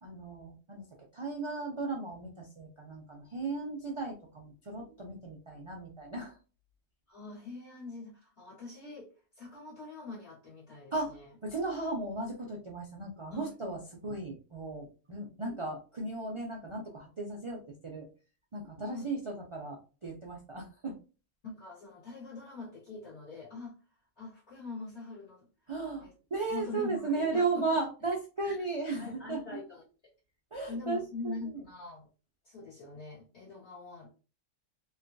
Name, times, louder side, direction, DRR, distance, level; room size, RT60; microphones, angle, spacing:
voice 1, 0.0-0.9 1.1-6.4 10.9-11.2 11.4-18.1 18.5-21.0 25.7-29.4 30.5-31.6, right 3 dB, 55° right, -2 dB, 0.3 m, -36 dB
voice 2, 7.1-11.3 13.3-13.8 18.9-19.1 21.4-23.8 24.2-25.5 26.0-26.1 26.5-27.8 28.4-28.6 29.0-29.8 30.7-32.1 32.4-34.1, left 3 dB, 60° left, -8 dB, 1.7 m, -43 dB
3.2 x 2.2 x 2.5 m, 0.34 s
omnidirectional pair, 1.3 m